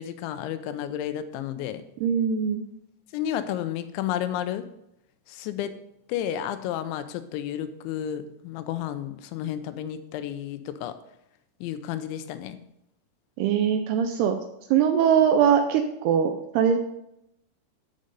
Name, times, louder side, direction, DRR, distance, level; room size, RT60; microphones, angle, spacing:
voice 1, 0.0-1.8 3.1-4.6 5.3-5.7 6.1-11.0 11.6-12.6, left 10 dB, 85° left, 11 dB, 3.0 m, -31 dB
voice 2, 2.0-2.6 13.4-14.4 14.7-16.8, right 8 dB, 80° right, 6 dB, 2.4 m, -22 dB
13.0 x 5.4 x 5.2 m, 0.81 s
omnidirectional pair, 5.3 m